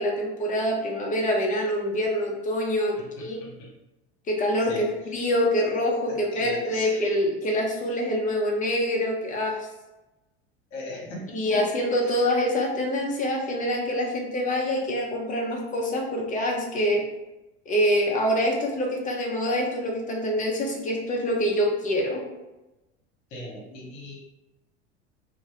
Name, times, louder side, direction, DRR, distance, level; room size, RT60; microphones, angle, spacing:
voice 1, 0.0-3.4 4.3-4.9 5.1-9.7 11.3-17.0 17.7-22.2, equal, 25° left, -1 dB, 0.6 m, -25 dB
voice 2, 3.0-3.7 4.7-4.9 6.1-7.1 10.7-11.6 12.0-12.2 23.3-24.2, left 1 dB, 55° left, -3 dB, 1.1 m, -39 dB
2.2 x 2.1 x 2.9 m, 1.0 s
hypercardioid pair, 90°, 34 cm